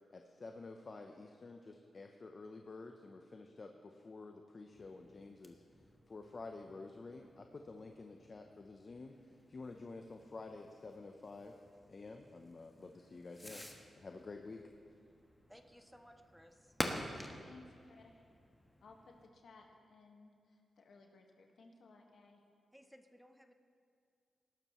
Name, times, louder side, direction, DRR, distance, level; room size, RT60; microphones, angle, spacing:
voice 1, 0.1-5.8 6.1-11.6 11.9-13.6 14.0-14.7, left 3 dB, 45° left, 4 dB, 0.8 m, -50 dB
Fireworks, 4.7-19.3, left 1 dB, 15° left, 1.3 m, -50 dB
voice 2, 15.5-16.8 22.7-23.5, equal, ahead, 6 dB, 0.8 m, -60 dB
voice 3, 18.8-22.4, left 3 dB, 70° left, 2 dB, 1.6 m, -60 dB
18.5 x 12.0 x 3.1 m, 2.3 s
cardioid pair, 70°, 0 cm